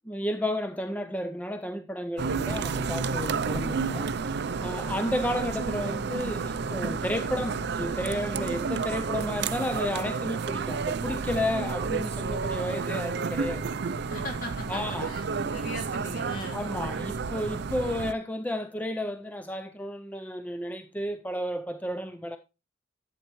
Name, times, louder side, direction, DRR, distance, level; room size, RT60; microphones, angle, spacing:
voice 1, 0.1-4.3 4.6-13.7 14.7-15.1 16.5-22.4, left 1 dB, 10° left, 0.4 m, -32 dB
sound 1, 2.2-18.1, right 5 dB, 55° right, 0.4 m, -31 dB
voice 2, 4.7-5.1 12.2-12.5 14.1-16.6, left 1 dB, 45° left, 2.4 m, -40 dB
11.5 x 8.0 x 3.0 m
head